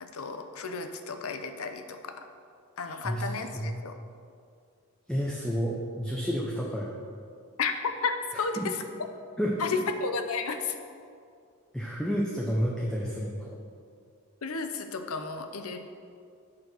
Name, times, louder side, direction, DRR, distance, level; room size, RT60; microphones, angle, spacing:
voice 1, 0.0-2.1 2.8-4.0 7.6-7.7 8.0-8.8 9.6-10.7 14.4-15.8, left 4 dB, 85° left, 7 dB, 0.7 m, -32 dB
voice 2, 2.9-3.2 3.5-3.7 5.1-6.9 8.3-8.7 9.4-9.5 11.7-13.6, equal, 5° left, -3 dB, 0.6 m, -30 dB
8.5 x 4.6 x 6.4 m, 2.3 s
head